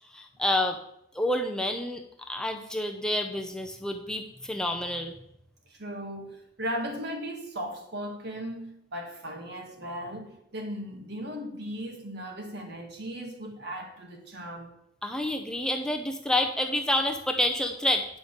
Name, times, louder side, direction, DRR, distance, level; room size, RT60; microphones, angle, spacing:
voice 1, 0.1-0.8 1.1-5.1 15.0-18.0, left 1 dB, 5° left, 0.6 m, -28 dB
voice 2, 5.7-14.8, equal, 60° right, 1.6 m, -37 dB
8.8 x 5.3 x 6.5 m
head